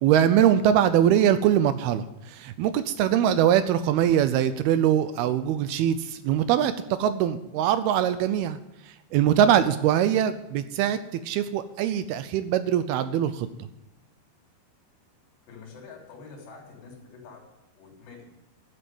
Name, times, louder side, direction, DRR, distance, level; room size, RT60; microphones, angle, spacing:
voice 1, 0.0-8.6 9.1-13.5, right 10 dB, 80° right, 12 dB, 2.5 m, -22 dB
voice 2, 15.5-17.4 17.8-18.3, left 4 dB, 85° left, 0 dB, 6.0 m, -46 dB
13.0 x 7.9 x 9.4 m, 0.92 s
omnidirectional pair, 4.8 m